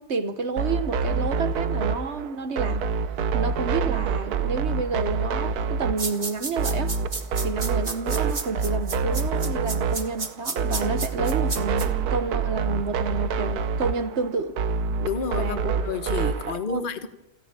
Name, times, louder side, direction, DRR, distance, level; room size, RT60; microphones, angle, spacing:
voice 1, 0.0-2.9 3.3-7.0 7.4-14.6 15.4-15.7 16.5-16.8, right 4 dB, 45° right, 1.2 m, -30 dB
sound 1, 0.6-16.5, right 5 dB, 60° right, 1.3 m, -26 dB
sound 2, 6.0-11.9, right 3 dB, 25° right, 1.5 m, -32 dB
voice 2, 15.0-17.1, left 5 dB, 35° left, 1.2 m, -30 dB
28.5 x 10.5 x 8.9 m
omnidirectional pair, 1.9 m